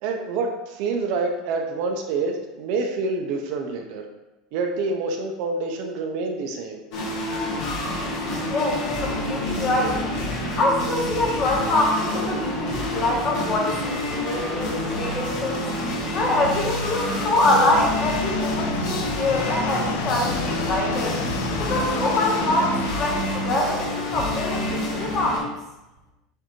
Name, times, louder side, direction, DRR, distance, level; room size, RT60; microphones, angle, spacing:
voice 1, 0.0-4.0 4.5-6.8, right 3 dB, 55° right, 3 dB, 0.5 m, -27 dB
sound 1, 6.9-25.4, left 1 dB, 50° left, 1.2 m, -28 dB
voice 2, 8.5-10.0 10.6-15.7 16.1-21.2 21.6-25.5, left 2 dB, 25° left, -2 dB, 0.9 m, -24 dB
sound 2, 15.4-23.4, left 7 dB, 90° left, 0.4 m, -33 dB
6.4 x 2.6 x 3.0 m, 1.0 s
supercardioid pair, 170°, 0 cm